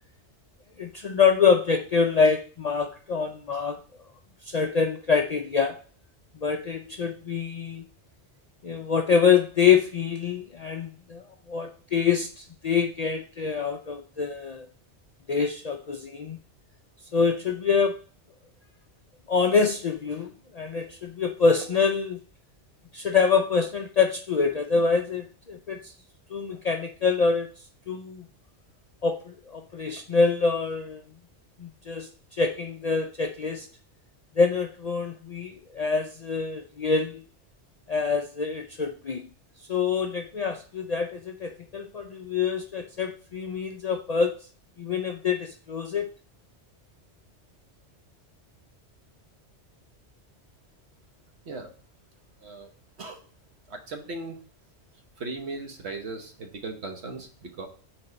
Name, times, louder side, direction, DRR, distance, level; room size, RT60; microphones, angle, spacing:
voice 1, 0.8-3.8 4.4-5.8 6.4-7.9 8.6-11.2 11.5-14.7 15.3-16.4 17.1-18.0 19.3-22.2 22.9-25.9 26.3-27.5 27.9-28.3 29.0-31.0 31.6-33.7 34.4-37.2 37.9-39.3 39.7-44.3 44.8-46.1, left 5 dB, 55° left, 4 dB, 0.4 m, -25 dB
voice 2, 53.7-54.4 55.2-57.7, right 3 dB, 70° right, 4 dB, 1.3 m, -37 dB
4.3 x 4.2 x 5.2 m, 0.40 s
omnidirectional pair, 1.2 m